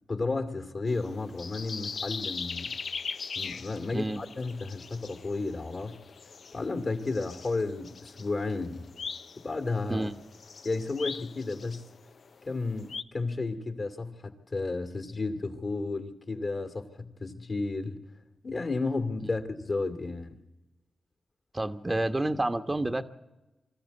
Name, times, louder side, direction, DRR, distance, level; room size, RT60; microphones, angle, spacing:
voice 1, 0.1-2.7 3.4-6.0 6.5-8.8 9.4-10.1 10.6-11.9 12.5-18.0 18.4-20.4, left 3 dB, 55° left, 2.4 m, -32 dB
sound 1, 0.9-13.0, left 5 dB, 70° left, 0.6 m, -41 dB
voice 2, 21.5-23.0, right 1 dB, 25° right, 1.1 m, -29 dB
24.0 x 14.0 x 8.3 m
supercardioid pair, 45°, 0 cm